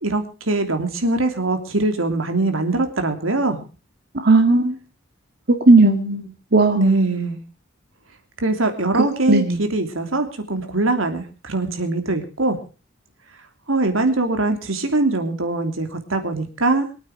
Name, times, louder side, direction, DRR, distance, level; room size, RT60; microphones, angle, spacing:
voice 1, 0.0-3.6 6.7-7.4 8.4-12.6 13.7-16.8, right 2 dB, 85° right, 6 dB, 3.0 m, -22 dB
voice 2, 4.2-4.8 5.5-7.0 9.3-9.6, right 2 dB, 50° right, 5 dB, 2.0 m, -16 dB
24.0 x 9.1 x 4.8 m, 0.35 s
head